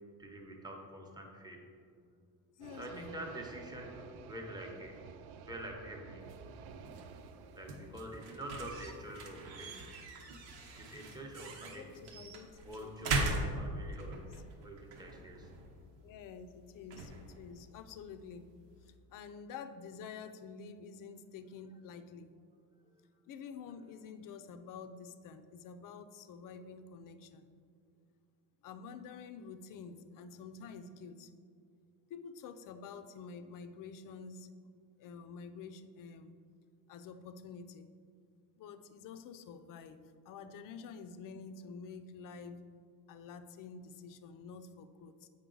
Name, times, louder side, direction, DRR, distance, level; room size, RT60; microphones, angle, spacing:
voice 1, 0.2-1.6 2.8-5.0 5.5-6.4 7.6-9.8 10.7-12.2 12.6-14.2 14.6-15.5 22.8-22.9, right 1 dB, 10° right, 0 dB, 0.8 m, -46 dB
voice 2, 2.6-3.2 11.6-14.4 16.0-18.5 18.8-22.3 23.3-27.5 28.6-31.3 32.1-34.5 35.0-36.3 36.9-37.9 38.6-42.6 43.1-45.3, left 5 dB, 50° left, 9 dB, 0.5 m, -49 dB
sound 1, 2.6-8.0, right 6 dB, 60° right, 0.5 m, -51 dB
sound 2, 6.2-19.0, right 2 dB, 85° right, 1.0 m, -41 dB
8.0 x 5.4 x 3.8 m, 2.2 s
cardioid pair, 150°, 42 cm